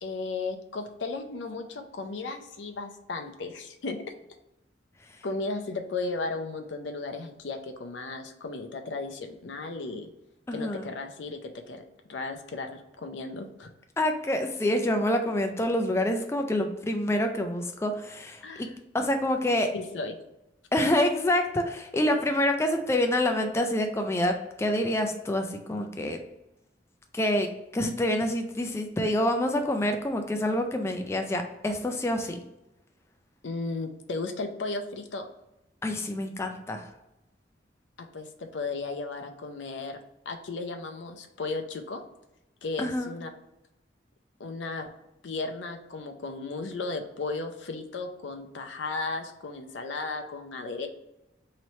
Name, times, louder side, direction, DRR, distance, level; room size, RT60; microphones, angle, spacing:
voice 1, 0.0-4.0 5.2-10.1 10.5-11.8 12.1-13.7 18.4-18.7 19.7-20.1 33.4-35.3 38.0-40.0 40.3-42.0 42.6-43.3 44.4-44.9 45.2-50.9, left 3 dB, 90° left, 5 dB, 0.6 m, -35 dB
voice 2, 10.5-10.9 14.0-18.7 18.9-19.7 20.7-26.2 27.1-32.4 35.8-36.9 42.8-43.1, left 1 dB, 15° left, 5 dB, 0.3 m, -27 dB
3.1 x 2.9 x 4.1 m, 0.90 s
head